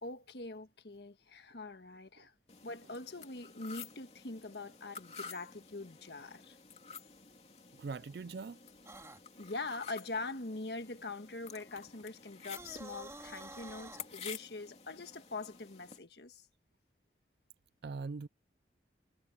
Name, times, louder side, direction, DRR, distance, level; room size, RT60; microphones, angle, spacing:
voice 1, 0.0-2.3 2.6-6.5 9.4-16.5, left 3 dB, 70° left, 1.5 m, -43 dB
sound 1, 2.5-16.0, left 6 dB, 35° left, 2.9 m, -51 dB
voice 2, 7.8-8.6 17.8-18.3, right 4 dB, 70° right, 0.4 m, -41 dB
sound 2, 8.9-9.2 12.4-14.1, right 2 dB, 15° right, 3.4 m, -49 dB
head